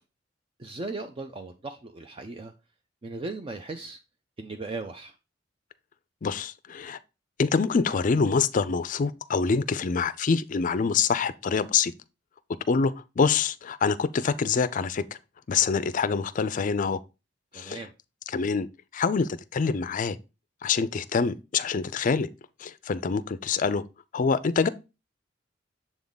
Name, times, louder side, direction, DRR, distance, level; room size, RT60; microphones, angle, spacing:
voice 1, 0.6-2.5 3.0-4.0 4.4-5.1 17.5-17.9, right 3 dB, 30° right, 0.4 m, -37 dB
voice 2, 6.2-7.0 7.4-11.9 12.7-15.0 15.5-17.0 17.5-17.8 18.3-18.7 18.9-20.2 20.6-22.3 22.6-23.8 24.1-24.7, left 5 dB, 45° left, 0.4 m, -25 dB
7.1 x 3.6 x 3.9 m
head